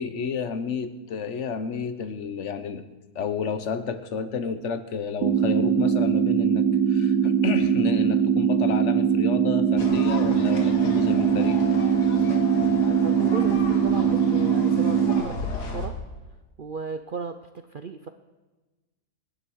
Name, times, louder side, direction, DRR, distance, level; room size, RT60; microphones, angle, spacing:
voice 1, 0.0-2.9 3.1-11.6, left 5 dB, 50° left, 11 dB, 1.1 m, -31 dB
sound 1, 5.2-15.2, right 7 dB, 90° right, 1.2 m, -21 dB
sound 2, 9.8-15.9, left 2 dB, 85° left, 2.5 m, -34 dB
voice 2, 13.0-15.9 16.6-18.1, right 5 dB, 60° right, 8 dB, 0.5 m, -35 dB
25.5 x 10.5 x 4.6 m, 1.2 s
omnidirectional pair, 1.7 m